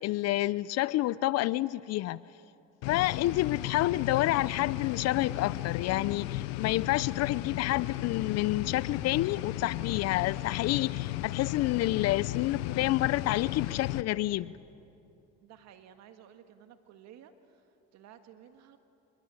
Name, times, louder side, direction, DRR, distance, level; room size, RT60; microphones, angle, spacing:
voice 1, 0.0-2.2 2.9-14.5, left 16 dB, 60° left, 20 dB, 0.6 m, -29 dB
sound 1, 2.8-14.0, left 16 dB, 80° left, 0.9 m, -35 dB
voice 2, 15.4-18.8, right 9 dB, 60° right, 8 dB, 1.8 m, -54 dB
27.0 x 22.0 x 9.0 m, 2.6 s
supercardioid pair, 90°, 30 cm